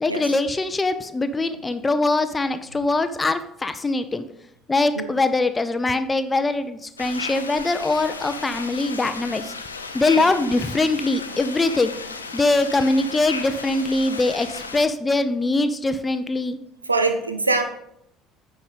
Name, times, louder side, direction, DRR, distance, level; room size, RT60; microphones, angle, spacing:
voice 1, 0.0-4.2 4.7-9.5 9.9-11.9 12.3-16.6, left 2 dB, 20° left, 11 dB, 0.6 m, -22 dB
sound 1, 7.0-14.8, left 4 dB, 90° left, 0.5 m, -34 dB
voice 2, 16.8-17.6, right 3 dB, 90° right, 7 dB, 0.4 m, -23 dB
9.7 x 5.0 x 3.9 m, 0.75 s
figure-of-eight pair, 60°, 0 cm